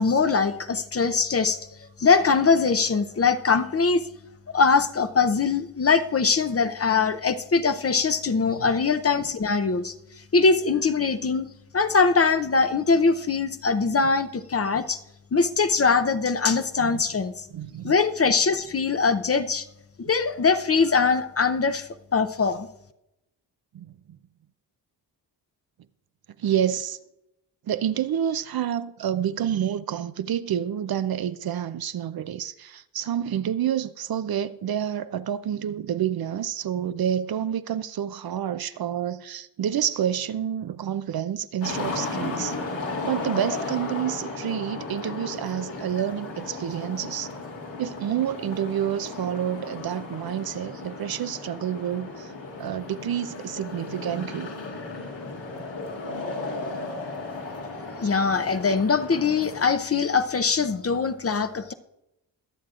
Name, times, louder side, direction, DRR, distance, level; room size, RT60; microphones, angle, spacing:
voice 1, 0.0-1.6 2.0-4.0 4.5-9.9 10.3-15.0 15.3-17.4 17.8-19.7 20.0-22.7 58.0-61.7, left 5 dB, 35° left, 0.7 m, -22 dB
voice 2, 17.5-17.9 23.7-24.2 26.4-27.0 27.7-42.5 43.0-47.3 47.8-52.3 52.6-54.5, right 10 dB, 55° right, 0.6 m, -28 dB
sound 1, 41.6-59.7, left 3 dB, 80° left, 2.8 m, -35 dB
22.0 x 7.5 x 2.5 m
cardioid pair, 55°, 44 cm